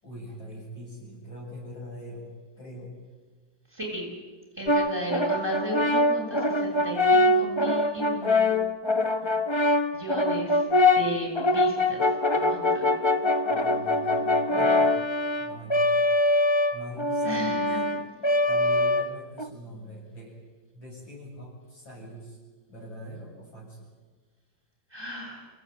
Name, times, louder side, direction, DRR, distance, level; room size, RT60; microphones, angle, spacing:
voice 1, 0.0-3.0 13.5-15.0 15.3-16.1 16.7-17.6 18.4-20.3 20.7-22.4 22.7-23.9, equal, 90° left, -2 dB, 8.5 m, -42 dB
voice 2, 3.7-4.1 4.5-8.6 9.2-9.4 9.9-10.6 10.9-12.1 12.3-12.9 17.2-18.3 24.9-25.5, equal, 10° right, 1 dB, 7.2 m, -35 dB
Brass instrument, 4.7-19.5, left 2 dB, 35° left, 0.4 m, -23 dB
28.0 x 17.0 x 9.5 m, 1.3 s
omnidirectional pair, 2.1 m